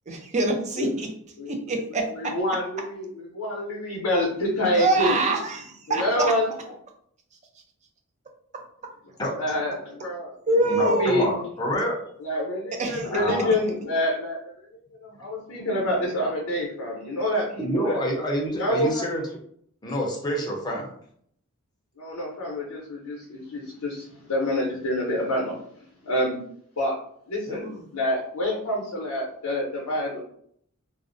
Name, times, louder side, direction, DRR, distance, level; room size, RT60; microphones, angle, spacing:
voice 1, 0.1-1.1 1.5-2.4 4.8-6.3 10.5-11.3 12.8-13.1 27.5-27.8, right 2 dB, 30° right, 3 dB, 0.4 m, -25 dB
voice 2, 1.4-5.3 5.9-6.7 9.3-10.4 10.8-11.3 12.2-14.4 15.0-18.0 18.6-19.0 22.0-26.4 26.8-26.9 27.3-30.2, left 1 dB, 85° left, -3 dB, 0.6 m, -27 dB
voice 3, 9.2-9.5 10.7-12.0 13.0-13.6 15.1-15.2 17.6-19.2 19.8-20.9, equal, 20° left, -2 dB, 0.5 m, -27 dB
2.4 x 2.0 x 2.5 m, 0.65 s
head